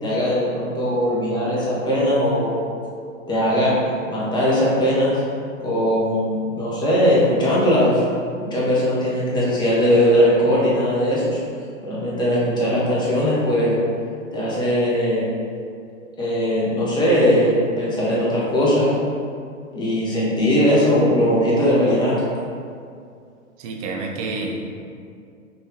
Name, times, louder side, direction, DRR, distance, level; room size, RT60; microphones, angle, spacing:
voice 1, 0.0-2.6 3.3-3.7 4.1-5.2 5.6-8.0 8.5-11.4 11.8-13.8 14.3-15.3 16.2-18.9 19.7-22.3, equal, 10° left, -7 dB, 0.9 m, -19 dB
voice 2, 23.6-24.7, right 3 dB, 30° right, 0 dB, 0.5 m, -28 dB
5.4 x 2.6 x 3.4 m, 2.3 s
figure-of-eight pair, 110°, 40 cm